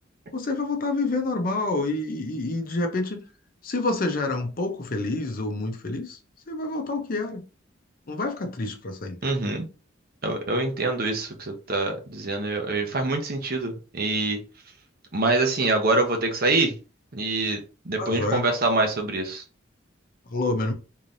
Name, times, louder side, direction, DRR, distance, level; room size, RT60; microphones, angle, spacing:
voice 1, 0.3-3.2 3.6-6.2 6.5-7.4 8.1-9.2 18.0-18.5 20.3-20.7, left 2 dB, 45° left, 0.7 m, -28 dB
voice 2, 9.2-9.7 10.2-14.4 15.1-16.7 17.1-17.6 17.8-19.4, right 2 dB, 50° right, 0.9 m, -25 dB
3.8 x 3.2 x 2.6 m
head